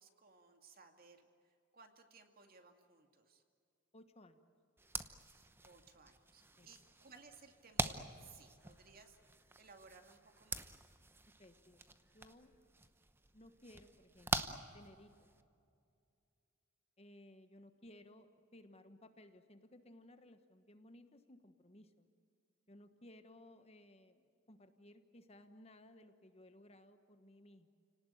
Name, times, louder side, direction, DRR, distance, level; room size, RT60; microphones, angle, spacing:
voice 1, 0.0-3.4 5.4-9.2 9.6-10.8, right 4 dB, 45° right, 5 dB, 2.3 m, -61 dB
voice 2, 3.9-4.5 6.6-6.7 11.4-12.5 13.3-15.1 17.0-22.1 22.7-27.7, left 1 dB, 30° left, 8 dB, 1.2 m, -60 dB
sound 1, 4.8-15.4, right 2 dB, 10° right, 0.9 m, -45 dB
30.0 x 18.5 x 9.3 m, 2.5 s
head